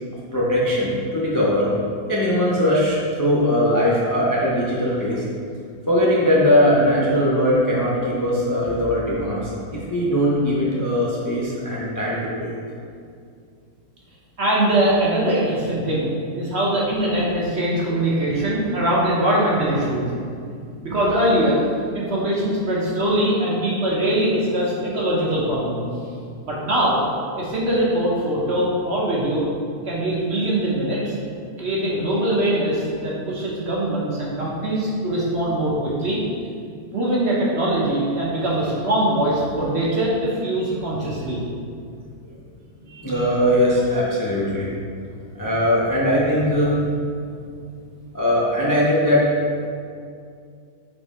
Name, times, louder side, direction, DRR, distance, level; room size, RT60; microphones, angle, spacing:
voice 1, 0.3-1.7 2.1-5.2 5.9-12.6 42.8-44.7 45.3-46.8 48.1-49.3, equal, 25° left, -6 dB, 0.4 m, -20 dB
voice 2, 14.4-20.1 20.8-21.6 21.9-25.9 26.4-27.0 27.4-29.4 29.8-31.1 31.6-36.2 36.9-41.4, right 1 dB, 45° right, -5 dB, 1.0 m, -22 dB
5.3 x 4.3 x 4.2 m, 2.3 s
omnidirectional pair, 1.8 m